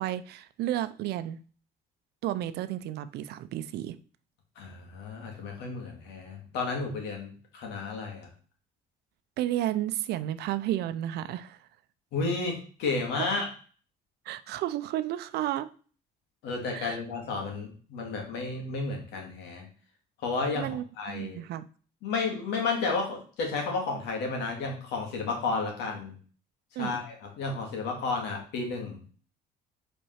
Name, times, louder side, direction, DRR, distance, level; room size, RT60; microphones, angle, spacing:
voice 1, 0.0-1.4 2.2-4.0 9.4-11.6 13.2-13.3 14.3-15.7 16.7-17.0 20.5-21.7 26.8-27.0, right 13 dB, 75° right, 0.6 m, -32 dB
voice 2, 4.6-8.3 12.1-13.5 16.4-19.7 20.2-20.7 21.0-21.4 22.0-26.2 26.8-29.0, left 4 dB, 90° left, 2.5 m, -32 dB
5.4 x 4.5 x 5.8 m
cardioid pair, 110°, 17 cm